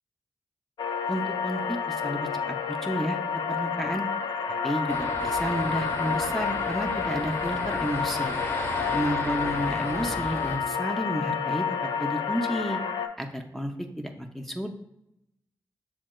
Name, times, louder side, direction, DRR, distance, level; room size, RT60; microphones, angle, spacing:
sound 1, 0.8-13.1, left 6 dB, 75° left, 0.4 m, -29 dB
voice 1, 1.1-3.2 3.5-4.0 4.6-8.4 8.9-11.7 12.0-12.8 13.2-14.7, equal, 5° left, 2 dB, 0.5 m, -31 dB
sound 2, 4.9-10.6, left 1 dB, 30° left, 1.0 m, -35 dB
7.2 x 2.7 x 2.2 m, 0.82 s
cardioid pair, 45°, 8 cm